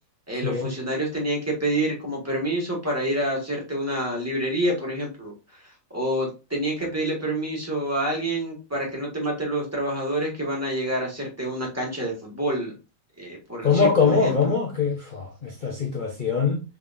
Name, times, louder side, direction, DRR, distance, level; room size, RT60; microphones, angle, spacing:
voice 1, 0.3-5.6 5.9-12.7 13.2-14.5, right 1 dB, 10° right, 1.3 m, -28 dB
voice 2, 13.6-16.6, left 5 dB, 80° left, 0.4 m, -22 dB
4.0 x 3.5 x 2.5 m
omnidirectional pair, 1.9 m